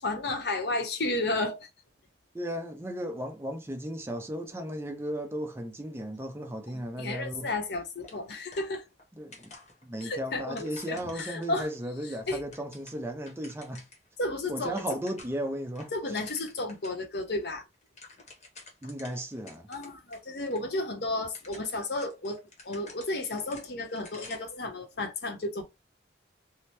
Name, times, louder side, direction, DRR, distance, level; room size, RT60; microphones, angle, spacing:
voice 1, 0.0-1.7 6.7-8.8 10.0-11.7 12.3-12.4 14.2-14.8 15.9-17.6 19.7-22.4 22.6-25.6, left 2 dB, 65° left, 0.7 m, -32 dB
voice 2, 2.3-7.5 9.2-9.5 9.8-13.8 14.5-15.9 18.8-19.7, equal, 15° right, 0.5 m, -35 dB
sound 1, 8.0-9.1 9.3-11.8 12.3-14.1 14.4-14.5 14.7-15.5 15.8-17.0 17.3-17.4 17.7-20.2 20.5-20.6 21.2-24.6, left 3 dB, 40° left, 0.9 m, -51 dB
2.8 x 2.0 x 3.2 m
head